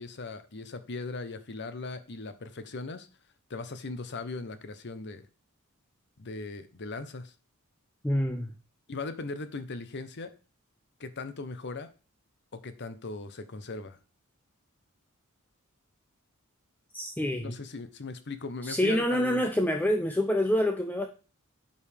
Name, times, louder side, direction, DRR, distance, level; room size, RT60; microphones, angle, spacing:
voice 1, 0.0-3.1 3.5-5.3 6.2-7.3 8.9-10.3 11.0-11.9 12.5-14.0 17.4-19.4, left 3 dB, 50° left, 11 dB, 0.8 m, -38 dB
voice 2, 8.0-8.5 16.9-17.6 18.6-21.1, left 1 dB, 10° left, 5 dB, 0.5 m, -27 dB
9.4 x 5.4 x 3.4 m, 0.34 s
head